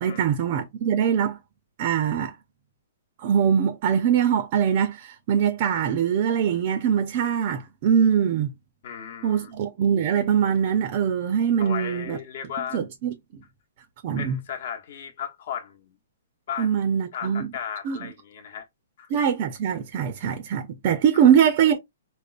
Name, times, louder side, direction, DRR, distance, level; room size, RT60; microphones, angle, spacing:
voice 1, 0.0-1.4 1.8-2.3 3.2-8.5 9.2-12.2 12.7-13.1 14.0-14.4 16.6-17.5 17.8-18.0 19.1-21.8, right 8 dB, 30° right, 0.5 m, -22 dB
voice 2, 8.8-9.5 11.6-12.8 14.1-16.0 16.5-18.7 19.0-19.1 21.1-21.3, left 8 dB, 50° left, 1.0 m, -36 dB
5.0 x 2.0 x 2.4 m
hypercardioid pair, 170°, 0 cm